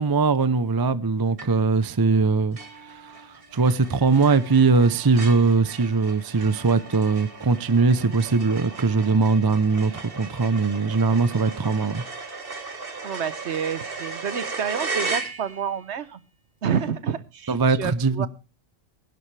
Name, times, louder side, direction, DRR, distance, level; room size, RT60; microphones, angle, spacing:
voice 1, 0.0-2.6 2.9-3.1 3.5-12.0 17.5-18.3, right 4 dB, 25° right, 0.5 m, -21 dB
sound 1, 1.4-1.8 2.2-2.3 2.6-15.8, right 4 dB, 45° right, 1.9 m, -36 dB
Wind instrument woodwind instrument, 2.5-10.0, right 2 dB, 45° left, 4.2 m, -52 dB
voice 2, 13.0-16.2 16.6-18.3, right 7 dB, 60° right, 1.1 m, -29 dB
20.0 x 11.5 x 3.3 m
omnidirectional pair, 1.4 m